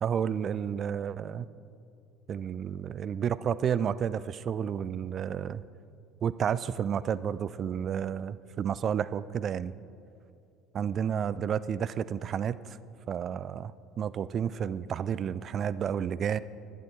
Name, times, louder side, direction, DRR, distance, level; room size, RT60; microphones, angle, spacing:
voice 1, 0.0-1.5 2.3-5.6 6.2-9.7 10.7-12.8 13.1-16.4, right 8 dB, 40° right, 17 dB, 0.3 m, -31 dB
11.5 x 11.5 x 4.6 m, 2.5 s
figure-of-eight pair, 60°, 0 cm